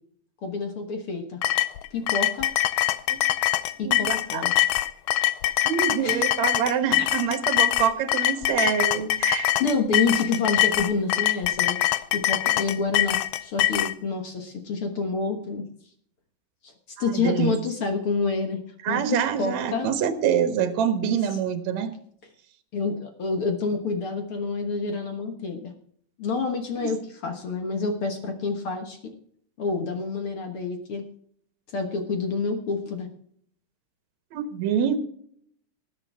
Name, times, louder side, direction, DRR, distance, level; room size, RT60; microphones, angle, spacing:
voice 1, 0.4-1.4 1.9-2.5 3.8-4.5 6.0-6.2 7.0-7.1 9.6-15.6 16.6-18.6 18.9-19.9 21.0-21.1 22.7-25.7 26.2-29.1 29.6-31.0 31.7-33.1, left 4 dB, 55° left, 4 dB, 1.9 m, -28 dB
sound 1, 1.4-13.9, left 15 dB, 80° left, 2.1 m, -23 dB
voice 2, 3.8-4.5 5.7-9.8 17.0-17.6 18.8-21.9 26.8-26.9 34.3-35.0, right 8 dB, 65° right, 9 dB, 2.4 m, -26 dB
19.5 x 8.7 x 3.5 m, 0.64 s
omnidirectional pair, 3.7 m